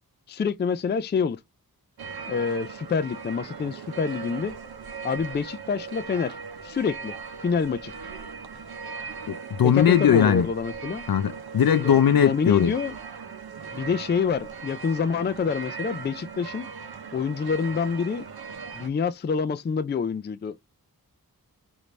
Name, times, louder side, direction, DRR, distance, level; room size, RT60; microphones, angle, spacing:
voice 1, 0.3-1.4 2.3-4.5 5.0-6.3 6.6-7.2 7.4-7.9 9.6-11.0 11.8-12.9 13.7-16.7 17.1-18.2 18.7-20.5, left 6 dB, 30° left, 0.4 m, -27 dB
sound 1, 2.0-18.9, right 5 dB, 90° right, 0.8 m, -39 dB
voice 2, 9.3-10.5 11.1-12.7, left 8 dB, 70° left, 0.6 m, -20 dB
5.0 x 2.7 x 3.1 m
wide cardioid pair, 105°, 37 cm